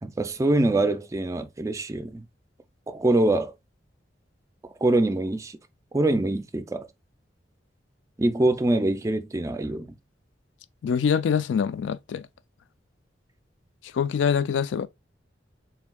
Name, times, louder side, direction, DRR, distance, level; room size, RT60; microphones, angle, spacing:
voice 1, 0.0-2.3 2.9-3.5 4.8-5.6 5.9-6.9 8.2-9.9, right 2 dB, 15° right, 0.3 m, -24 dB
voice 2, 10.8-12.3 13.9-14.9, left 7 dB, 80° left, 0.3 m, -24 dB
4.4 x 3.6 x 2.2 m
head